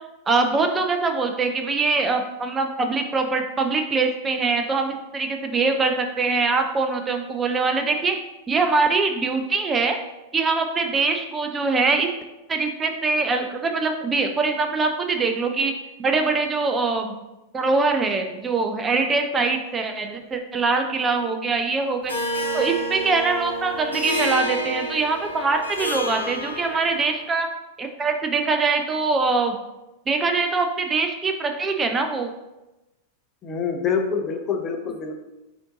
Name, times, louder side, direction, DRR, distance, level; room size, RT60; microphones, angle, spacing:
voice 1, 0.3-8.1 8.5-10.0 10.3-12.1 12.5-15.7 16.0-17.1 17.5-22.1 22.5-27.5 27.8-29.6 30.1-32.3, right 4 dB, 20° right, 5 dB, 0.4 m, -23 dB
Harp, 22.1-27.1, right 1 dB, 80° left, 0.9 m, -29 dB
voice 2, 33.4-35.2, left 6 dB, 30° left, 3 dB, 0.5 m, -26 dB
4.3 x 2.6 x 3.7 m, 0.99 s
figure-of-eight pair, 90°, 0 cm